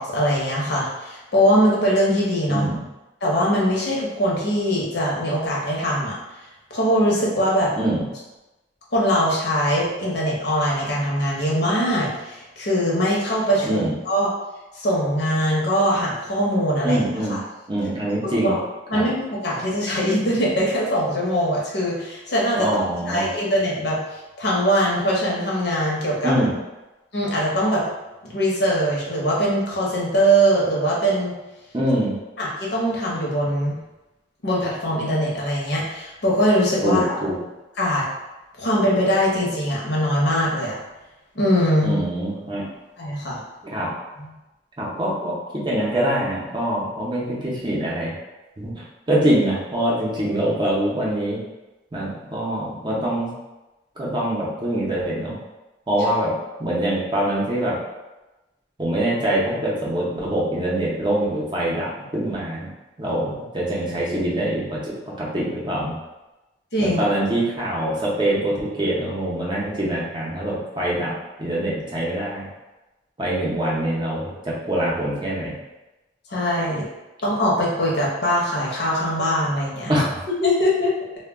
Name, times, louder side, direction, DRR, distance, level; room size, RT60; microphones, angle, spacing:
voice 1, 0.0-2.7 3.2-6.2 6.7-7.7 8.9-14.3 14.7-17.0 17.3-17.4 18.2-18.6 18.9-22.7 23.1-26.3 27.1-27.8 28.2-31.3 32.4-33.7 34.4-37.2 37.8-38.1 38.6-40.8 41.3-42.0 43.0-43.4 44.2-44.3 66.7-67.0 76.3-76.9 77.2-79.9 80.4-80.9, equal, 65° left, -4 dB, 0.7 m, -22 dB
voice 2, 2.5-2.8 7.8-8.0 13.6-13.9 16.8-17.4 17.7-18.6 18.9-19.0 22.6-23.3 26.2-26.5 31.7-32.1 36.8-37.4 41.8-42.6 43.6-43.9 44.8-48.1 48.6-51.4 51.9-53.3 54.0-55.4 55.9-56.3 56.6-57.8 58.8-62.7 63.0-65.9 66.8-71.1 71.4-72.5 73.2-75.5 79.9-80.0, right 1 dB, 25° right, -5 dB, 0.6 m, -24 dB
2.2 x 2.1 x 3.4 m, 1.0 s
head